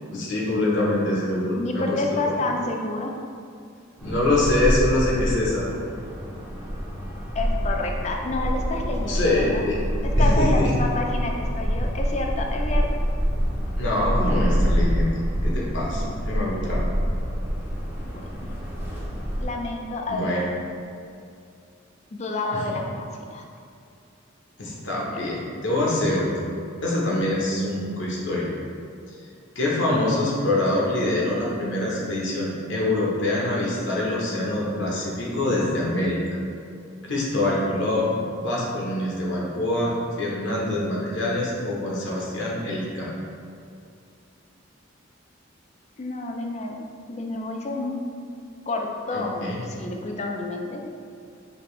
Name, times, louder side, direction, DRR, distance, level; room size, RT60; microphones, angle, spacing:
voice 1, 0.1-2.0 4.0-5.6 9.1-9.8 10.2-10.7 13.8-16.9 20.1-20.5 22.5-22.6 24.6-26.3 26.8-28.5 29.5-36.2 37.0-39.9 40.2-43.1 49.1-49.6, left 1 dB, 65° left, -5 dB, 1.0 m, -25 dB
voice 2, 1.5-3.1 7.3-9.6 10.0-12.9 15.9-16.2 18.0-18.5 19.4-20.4 22.1-23.5 25.0-25.2 46.0-46.8 47.1-48.0 48.7-50.8, left 2 dB, 35° left, 1 dB, 0.4 m, -29 dB
sound 1, 4.0-19.4, equal, 10° right, 0.7 m, -26 dB
5.1 x 2.9 x 3.2 m, 2.4 s
head